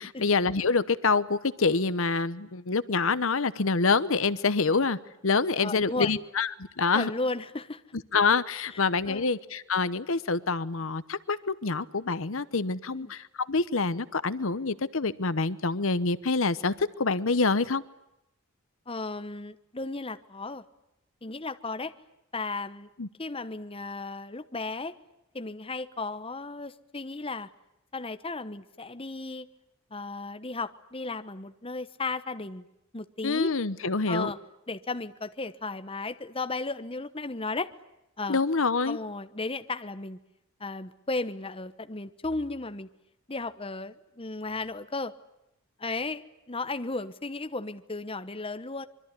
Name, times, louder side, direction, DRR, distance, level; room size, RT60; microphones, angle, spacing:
voice 1, 0.0-5.0 5.2-6.5 6.8-7.1 8.1-17.8 23.0-23.1 33.2-34.3 38.3-39.0, left 4 dB, 70° left, 15 dB, 1.0 m, -26 dB
voice 2, 5.6-6.1 6.9-7.8 8.7-9.3 12.9-13.1 18.9-20.6 21.2-21.9 22.3-22.9 23.2-25.0 25.3-27.5 27.9-29.5 29.9-32.7 32.9-33.5 34.1-34.4 34.7-37.7 38.2-38.4 38.8-40.2 40.6-42.9 43.3-45.1 45.8-48.9, left 3 dB, 25° left, 10 dB, 1.1 m, -35 dB
25.5 x 23.5 x 9.8 m, 0.87 s
head